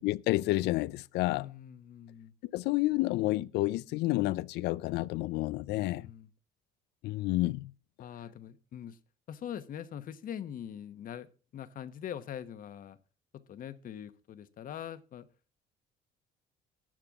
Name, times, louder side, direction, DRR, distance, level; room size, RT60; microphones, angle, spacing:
voice 1, 0.0-1.5 2.5-6.1 7.0-7.7, left 18 dB, 80° left, 0.5 m, -30 dB
voice 2, 1.3-2.3 5.7-6.3 8.0-9.0 9.3-13.0 13.3-15.3, left 9 dB, 55° left, 1.1 m, -43 dB
13.5 x 8.9 x 3.6 m
cardioid pair, 110°, 17 cm